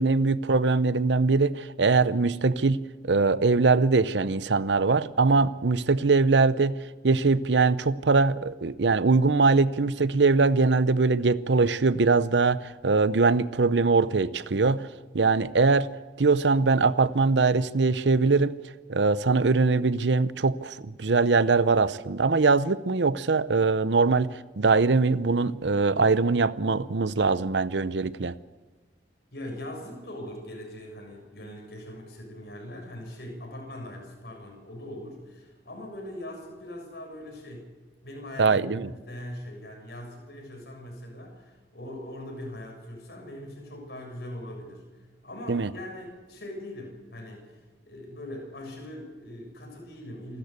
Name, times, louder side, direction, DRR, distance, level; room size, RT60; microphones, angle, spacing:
voice 1, 0.0-6.8 7.0-14.9 15.1-15.9 16.2-18.6 18.9-28.4 38.4-38.9 45.5-45.7, right 4 dB, 80° right, 0.7 m, -22 dB
voice 2, 29.3-37.7 38.0-44.8 45.2-50.4, left 1 dB, 60° left, 7.2 m, -41 dB
27.5 x 13.5 x 8.3 m
head